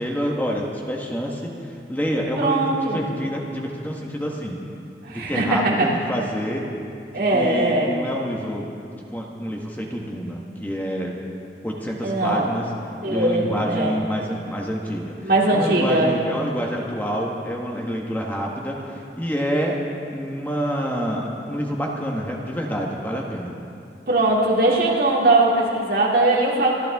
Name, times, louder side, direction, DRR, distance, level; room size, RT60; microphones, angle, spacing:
voice 1, 0.0-4.6 5.1-6.6 7.3-8.7 9.0-11.2 11.6-12.7 13.1-19.8 20.1-23.5, equal, 10° left, -1 dB, 1.2 m, -27 dB
voice 2, 2.4-3.0 5.0-5.9 7.1-7.9 12.0-12.5 13.0-13.9 15.2-16.1 24.1-26.7, right 2 dB, 55° right, -3 dB, 2.6 m, -20 dB
26.5 x 12.0 x 3.5 m, 2.5 s
head